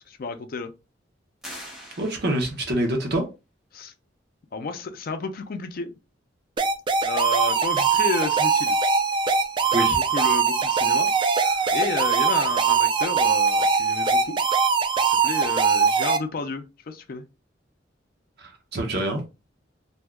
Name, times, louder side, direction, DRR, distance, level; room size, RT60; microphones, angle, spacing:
voice 1, 0.1-0.7 3.7-3.9 4.5-6.0 7.0-8.8 9.6-11.1 11.7-14.4 15.0-17.2, left 3 dB, 50° left, 0.4 m, -31 dB
sound 1, 1.4-2.8, equal, ahead, 0.8 m, -42 dB
voice 2, 2.0-3.2 9.7-10.0 11.6-11.7 18.4-19.2, right 1 dB, 60° right, 0.9 m, -26 dB
sound 2, 6.6-16.2, right 5 dB, 25° right, 0.3 m, -21 dB
2.7 x 2.3 x 3.4 m
head